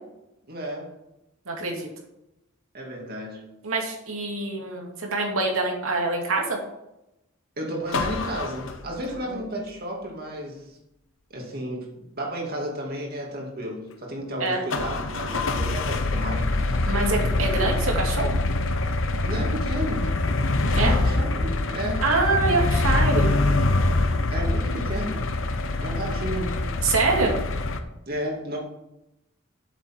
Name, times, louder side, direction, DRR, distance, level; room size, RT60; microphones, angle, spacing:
voice 1, 0.5-1.0 2.7-3.5 7.6-10.8 11.3-16.7 19.2-20.2 20.7-22.1 24.3-25.3 25.8-26.6 28.1-28.6, equal, 45° right, -1 dB, 2.6 m, -32 dB
voice 2, 1.5-1.9 3.6-6.6 9.3-9.4 14.4-14.6 16.9-18.4 20.8-20.9 22.0-23.3 26.8-27.4, right 3 dB, 80° right, 0 dB, 2.5 m, -25 dB
sound 1, 7.9-9.2 14.7-27.8, left 2 dB, 65° left, 1.0 m, -24 dB
8.1 x 7.2 x 6.2 m, 0.89 s
head